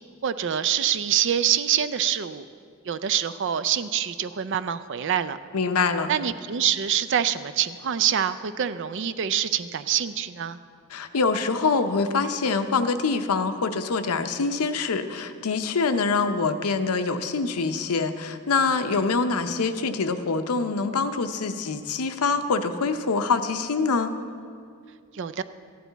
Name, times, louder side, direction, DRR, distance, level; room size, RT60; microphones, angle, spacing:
voice 1, 0.2-2.4 2.9-5.4 6.1-10.6 25.1-25.4, right 9 dB, 55° right, 13 dB, 0.4 m, -25 dB
voice 2, 5.5-6.1 10.9-24.1, left 4 dB, 85° left, 9 dB, 0.6 m, -25 dB
14.0 x 10.5 x 4.0 m, 2.3 s
head